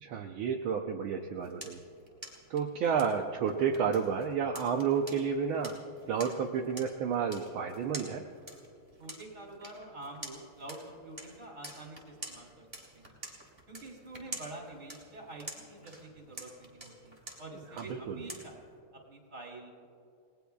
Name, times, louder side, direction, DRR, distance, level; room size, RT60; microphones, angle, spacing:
voice 1, 0.0-1.8 2.5-5.7 6.1-8.2 17.8-18.3, right 6 dB, 75° right, 1 dB, 1.6 m, -31 dB
sound 1, 1.1-18.8, right 1 dB, 10° right, 2.7 m, -49 dB
voice 2, 9.0-12.7 12.9-13.1 13.7-18.6 19.1-19.9, right 2 dB, 35° right, -1 dB, 3.7 m, -47 dB
30.0 x 19.5 x 2.3 m, 2.5 s
omnidirectional pair, 2.3 m